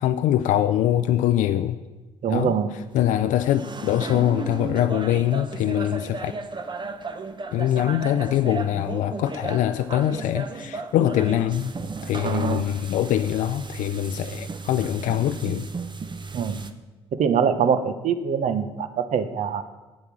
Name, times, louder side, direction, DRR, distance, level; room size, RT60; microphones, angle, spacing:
voice 1, 0.0-1.8 2.3-2.5 2.9-6.3 7.5-11.7 12.0-15.7, left 12 dB, 70° left, 10 dB, 0.4 m, -23 dB
voice 2, 2.2-2.7 12.2-12.7 16.3-16.6 17.1-19.6, right 7 dB, 60° right, 10 dB, 1.0 m, -23 dB
sound 1, 3.0-3.1 3.4-16.7, right 4 dB, 35° right, 0.9 m, -35 dB
8.6 x 8.0 x 6.1 m, 1.2 s
hypercardioid pair, 45°, 14 cm